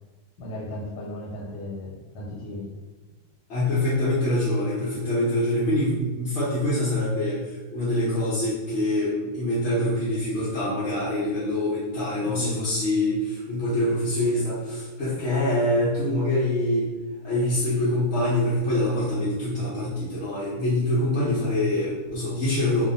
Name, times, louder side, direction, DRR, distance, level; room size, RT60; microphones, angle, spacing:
voice 1, 0.4-2.7 12.2-12.6, left 1 dB, 85° left, -4 dB, 1.2 m, -35 dB
voice 2, 3.5-16.9 17.2-22.8, left 1 dB, 60° left, -9 dB, 0.8 m, -25 dB
2.6 x 2.4 x 2.5 m, 1.2 s
omnidirectional pair, 1.7 m